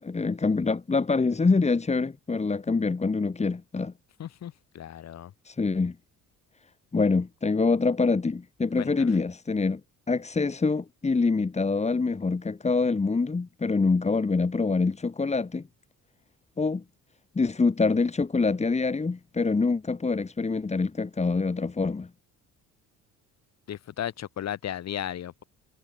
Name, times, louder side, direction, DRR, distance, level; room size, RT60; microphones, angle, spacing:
voice 1, 0.0-3.9 5.4-5.9 6.9-9.8 10.1-15.7 16.6-16.8 17.3-22.1, left 4 dB, 20° left, 6.5 m, -25 dB
voice 2, 4.2-5.3 8.8-9.2 23.7-25.4, left 10 dB, 55° left, 7.5 m, -35 dB
cardioid pair, 120°, 31 cm